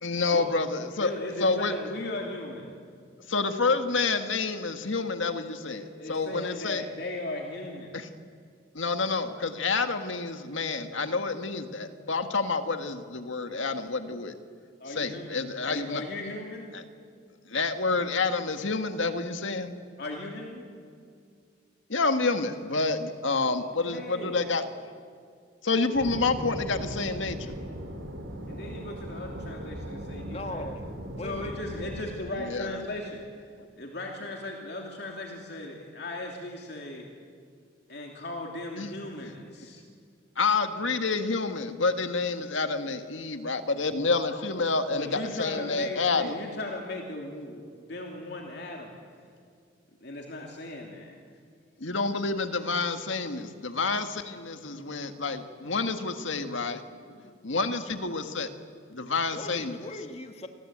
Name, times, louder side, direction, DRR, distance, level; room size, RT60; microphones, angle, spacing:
voice 1, 0.0-1.1 1.4-1.7 3.3-6.8 7.9-8.1 8.8-14.3 15.0-16.0 16.7-16.8 17.5-19.8 21.9-24.6 25.6-27.5 32.4-32.7 38.8-38.9 40.4-46.3 51.8-56.8 57.4-58.5 58.9-59.8, left 3 dB, 75° left, 7 dB, 1.8 m, -28 dB
voice 2, 1.0-2.8 5.6-8.0 14.8-16.7 20.0-20.7 23.4-24.5 28.5-30.7 31.2-33.3 33.8-37.1 37.9-39.8 44.9-48.9 50.0-51.1, left 1 dB, 55° left, 1 dB, 2.8 m, -37 dB
sound 1, 25.9-32.0, equal, 85° right, 4.2 m, -38 dB
voice 3, 30.3-31.5 59.3-60.5, left 1 dB, 30° left, 6 dB, 1.9 m, -39 dB
29.0 x 21.5 x 8.8 m, 2.2 s
head